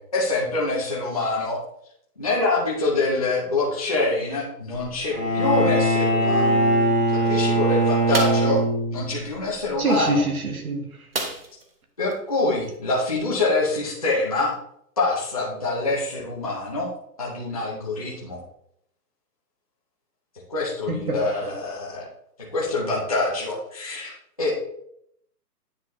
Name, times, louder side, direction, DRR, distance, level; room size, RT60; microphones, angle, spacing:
voice 1, 0.0-1.6 2.2-6.7 7.1-8.6 8.9-10.2 12.0-14.5 15.0-16.9 17.2-18.4 20.5-22.1 22.4-24.1 24.4-24.5, left 2 dB, 25° left, -6 dB, 0.7 m, -25 dB
Bowed string instrument, 5.1-9.2, right 1 dB, 5° right, 0.9 m, -21 dB
sound 1, 8.1-8.5 11.1-11.7 12.1-12.2 12.6-12.8, right 2 dB, 40° right, 0.7 m, -29 dB
voice 2, 9.8-10.9 20.9-21.0 21.4-21.5, right 1 dB, 60° right, 5 dB, 1.3 m, -24 dB
9.3 x 4.0 x 3.1 m, 0.73 s
hypercardioid pair, 175°, 49 cm